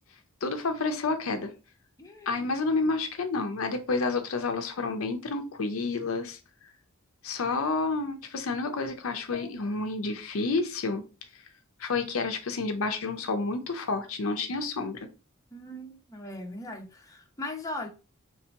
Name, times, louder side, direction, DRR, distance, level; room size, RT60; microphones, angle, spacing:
voice 1, 0.4-1.5 2.3-6.4 7.2-11.0 11.8-15.1, left 3 dB, 70° left, 0.6 m, -29 dB
voice 2, 2.0-2.4 8.7-8.8 9.1-9.5 15.5-17.9, left 1 dB, 15° left, 0.8 m, -40 dB
3.2 x 2.8 x 4.4 m
head